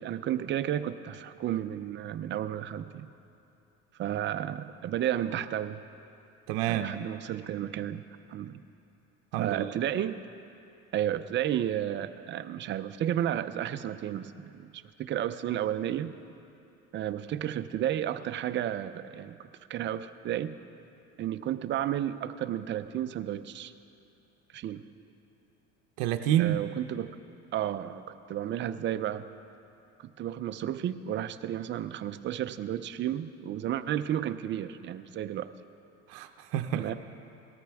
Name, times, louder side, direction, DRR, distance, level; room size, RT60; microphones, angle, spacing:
voice 1, 0.0-3.1 4.0-5.8 6.7-8.0 8.3-8.6 9.4-10.2 10.9-16.1 16.9-19.4 19.7-20.5 21.2-23.7 24.5-24.8 26.4-27.1 27.5-29.2 30.0-35.5 36.8-36.9, right 11 dB, 35° right, 11 dB, 0.5 m, -32 dB
voice 2, 6.5-7.0 9.3-9.7 26.0-26.7 36.1-36.9, right 12 dB, 80° right, 6 dB, 0.7 m, -28 dB
18.5 x 13.5 x 3.5 m, 2.7 s
cardioid pair, 125°, 33 cm